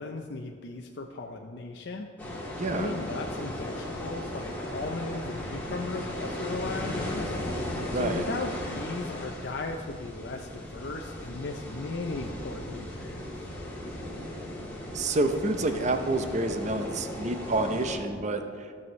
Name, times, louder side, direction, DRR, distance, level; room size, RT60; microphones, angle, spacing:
voice 1, 0.0-2.1 2.7-7.4 7.9-13.2, left 3 dB, 65° left, 2 dB, 0.5 m, -36 dB
sound 1, 2.2-18.0, left 1 dB, 10° left, 1.9 m, -36 dB
voice 2, 2.6-2.9 7.8-8.3 14.9-18.4, right 2 dB, 40° right, 7 dB, 0.6 m, -28 dB
15.0 x 7.0 x 3.2 m, 2.1 s
head